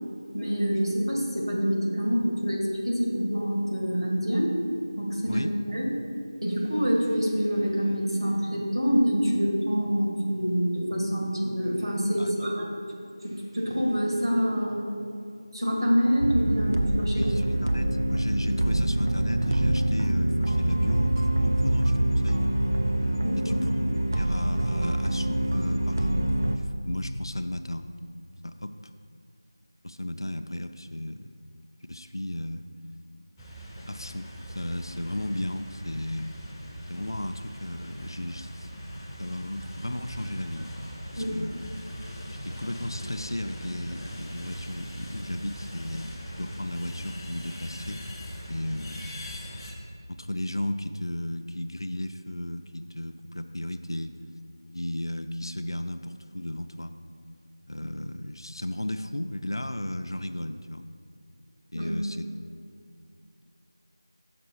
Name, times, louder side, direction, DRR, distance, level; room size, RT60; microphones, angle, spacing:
voice 1, 0.3-4.6 5.0-5.9 6.4-12.7 13.2-14.8 15.5-17.3 23.2-23.6 41.2-41.3 61.7-61.9, equal, 85° right, -2 dB, 1.8 m, -26 dB
sound 1, 16.2-26.6, right 1 dB, 45° right, 0.5 m, -25 dB
voice 2, 17.1-22.4 23.4-23.7 24.1-27.9 28.4-28.7 29.8-31.2 31.9-32.7 33.9-34.3 34.6-36.4 36.9-38.7 39.2-40.8 41.1-41.6 42.4-48.0 48.5-49.1 50.1-54.2 54.7-56.9 57.7-60.9 61.7-62.3, left 1 dB, 75° left, 8 dB, 0.3 m, -34 dB
sound 2, 33.4-49.7, equal, 5° left, 0.4 m, -40 dB
5.9 x 4.3 x 6.1 m, 2.4 s
figure-of-eight pair, 170°, 2 cm